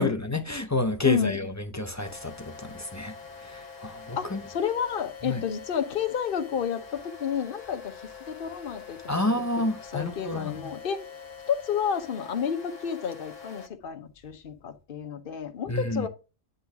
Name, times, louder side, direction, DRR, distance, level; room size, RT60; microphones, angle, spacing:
voice 1, 0.0-3.1 3.4-4.4 5.2-5.4 9.1-10.5 15.7-16.1, left 2 dB, 25° left, 0.4 m, -29 dB
sound 1, 2.0-13.7, left 6 dB, 70° left, 1.4 m, -45 dB
voice 2, 4.2-9.3 9.9-11.0 11.5-16.1, left 7 dB, 50° left, 1.0 m, -30 dB
9.8 x 3.9 x 3.6 m
omnidirectional pair, 1.3 m